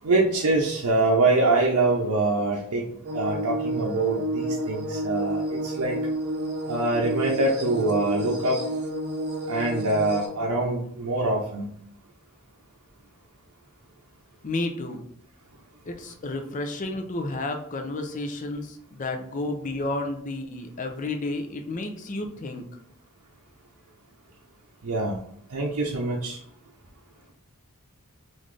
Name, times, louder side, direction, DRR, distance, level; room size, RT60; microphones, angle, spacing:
voice 1, 0.0-6.0 6.7-8.6 9.5-11.7 24.8-25.2 25.5-26.4, right 2 dB, 80° right, -2 dB, 0.6 m, -24 dB
sound 1, 3.0-10.3, right 1 dB, 50° right, 0.8 m, -30 dB
voice 2, 14.4-15.0 15.9-22.7, left 2 dB, 35° left, 4 dB, 0.5 m, -31 dB
3.9 x 2.5 x 3.2 m, 0.66 s
head